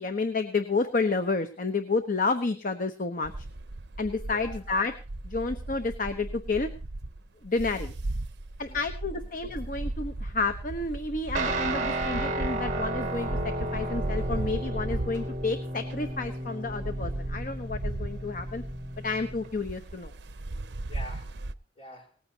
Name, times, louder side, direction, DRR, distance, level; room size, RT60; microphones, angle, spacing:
voice 1, 0.0-3.4 4.0-4.9 5.2-6.7 7.4-7.9 8.6-18.6 19.0-20.1, left 3 dB, 50° left, 1.0 m, -30 dB
sound 1, 3.2-21.5, right 2 dB, 75° right, 0.7 m, -36 dB
voice 2, 4.3-4.6 8.6-9.3 20.9-21.5 21.8-22.2, left 1 dB, 35° left, 4.4 m, -47 dB
Guitar, 11.3-19.5, right 1 dB, 45° right, 2.1 m, -33 dB
19.0 x 14.5 x 2.9 m
head